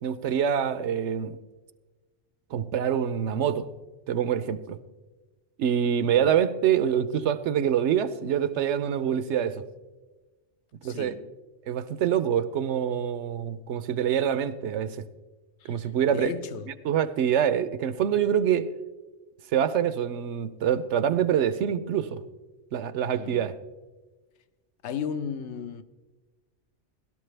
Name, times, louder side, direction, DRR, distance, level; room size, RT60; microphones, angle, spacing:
voice 1, 0.0-1.4 2.5-3.7 4.1-4.8 5.6-9.6 10.8-11.1 11.7-15.0 15.6-16.3 16.8-18.7 19.5-22.2 22.7-23.6, right 9 dB, 75° right, 0.9 m, -25 dB
voice 2, 10.8-11.3 15.6-16.7 23.1-23.5 24.8-25.8, left 7 dB, 75° left, 0.9 m, -35 dB
17.0 x 12.5 x 3.3 m
omnidirectional pair, 1.2 m